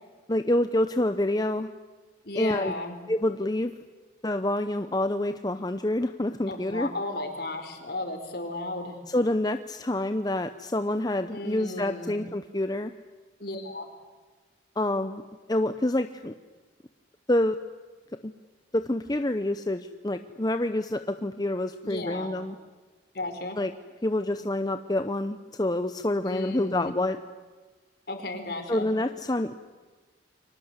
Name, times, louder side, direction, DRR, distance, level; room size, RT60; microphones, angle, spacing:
voice 1, 0.3-1.7 2.4-2.7 3.1-3.7 4.2-6.9 9.1-12.9 14.8-15.2 15.5-16.3 17.3-17.6 18.2-18.3 18.7-22.6 23.6-23.7 24.0-27.2 28.7-29.5, left 1 dB, 20° left, 9 dB, 0.8 m, -27 dB
voice 2, 2.2-3.0 6.5-9.0 11.3-12.1 13.4-13.9 21.8-22.3 23.1-23.6 26.2-26.9 28.1-28.9, left 2 dB, 55° left, 6 dB, 4.6 m, -34 dB
30.0 x 24.5 x 8.2 m, 1.3 s
head